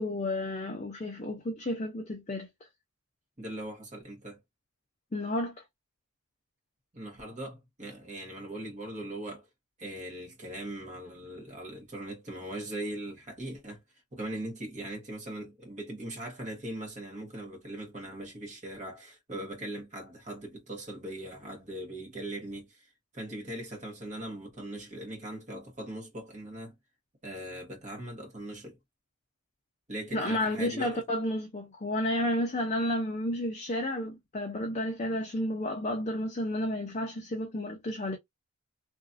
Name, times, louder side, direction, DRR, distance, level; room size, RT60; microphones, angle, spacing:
voice 1, 0.0-2.5 5.1-5.5 30.1-38.2, left 1 dB, 30° left, 0.6 m, -31 dB
voice 2, 3.4-4.4 6.9-9.5 9.8-13.8 14.1-26.7 27.2-28.8 29.9-31.0, right 1 dB, 35° right, 1.4 m, -40 dB
3.0 x 2.6 x 2.5 m
head